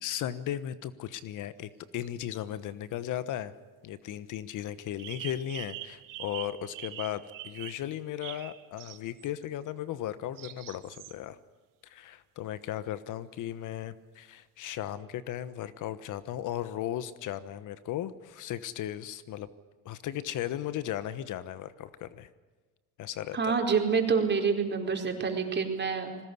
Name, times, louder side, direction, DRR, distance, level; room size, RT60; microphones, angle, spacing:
voice 1, 0.0-3.5 3.8-11.4 11.8-19.5 19.8-22.3 23.0-23.6, left 11 dB, 60° left, 15 dB, 1.2 m, -36 dB
sound 1, 2.0-2.1 5.0-9.4 10.4-11.2, right 13 dB, 65° right, 2.0 m, -43 dB
voice 2, 23.3-26.1, right 5 dB, 30° right, 3 dB, 4.6 m, -27 dB
21.0 x 18.5 x 9.7 m, 1.4 s
supercardioid pair, 90°, 35 cm